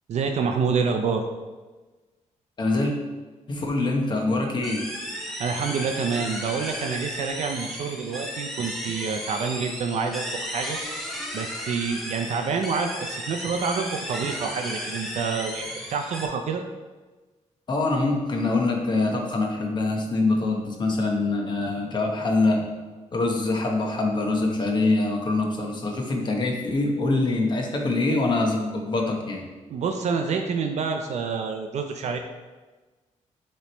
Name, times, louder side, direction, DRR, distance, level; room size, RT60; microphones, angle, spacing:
voice 1, 0.1-1.2 5.3-10.8 11.3-16.6 29.7-32.2, right 5 dB, 60° right, 5 dB, 0.5 m, -27 dB
voice 2, 2.6-2.9 3.5-4.9 17.7-22.6 23.1-29.4, left 2 dB, 35° left, 1 dB, 0.9 m, -24 dB
sound 1, 4.6-16.3, equal, ahead, 0.7 m, -34 dB
7.0 x 3.2 x 4.2 m, 1.3 s
wide cardioid pair, 155°, 13 cm